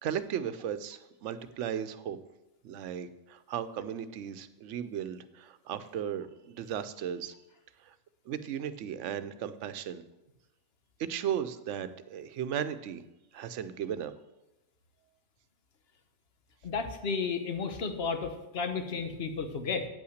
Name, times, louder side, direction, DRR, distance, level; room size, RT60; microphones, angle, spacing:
voice 1, 0.0-2.2 2.6-7.3 7.8-7.9 8.3-10.0 11.0-13.0 13.3-14.1, right 9 dB, 85° right, 13 dB, 0.9 m, -36 dB
voice 2, 16.6-19.9, left 5 dB, 60° left, 7 dB, 1.1 m, -33 dB
8.9 x 5.6 x 6.4 m, 0.96 s
omnidirectional pair, 1.2 m